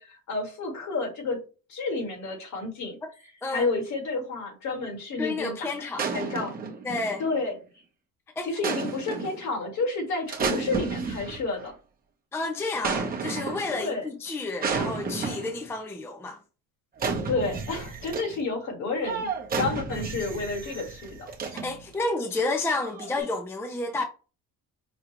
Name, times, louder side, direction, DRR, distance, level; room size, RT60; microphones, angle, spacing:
voice 1, 0.0-1.4 1.7-3.0 3.5-6.5 7.2-7.6 8.4-11.7 13.7-14.1 17.3-21.3, left 3 dB, 60° left, 1.8 m, -30 dB
voice 2, 5.2-6.1 6.8-7.2 8.4-8.7 12.3-16.4 21.5-24.0, left 2 dB, 10° left, 0.4 m, -30 dB
sound 1, 6.0-7.4 8.6-9.4 10.3-11.7 12.8-13.8 14.6-15.7 17.0-18.4 19.0-21.9 22.8-23.2, right 5 dB, 25° right, 0.8 m, -32 dB
5.0 x 2.3 x 2.9 m
cardioid pair, 140°, 33 cm